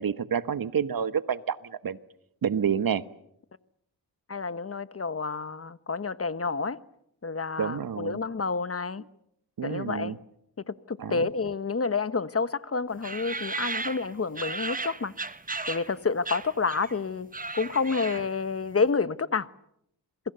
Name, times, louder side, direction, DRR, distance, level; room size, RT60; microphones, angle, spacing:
voice 1, 0.0-2.0 2.4-3.0 7.6-8.2 9.6-10.2 11.0-11.3, right 7 dB, 55° right, 14 dB, 1.4 m, -29 dB
voice 2, 4.3-6.8 7.2-9.0 9.6-10.1 10.7-15.1 15.7-17.3 17.5-19.5, left 4 dB, 35° left, 14 dB, 1.2 m, -29 dB
sound 1, 13.0-15.9 16.2-17.0 17.2-18.4, right 3 dB, 20° right, 1.2 m, -35 dB
27.5 x 23.5 x 6.9 m, 0.76 s
cardioid pair, 65°, 41 cm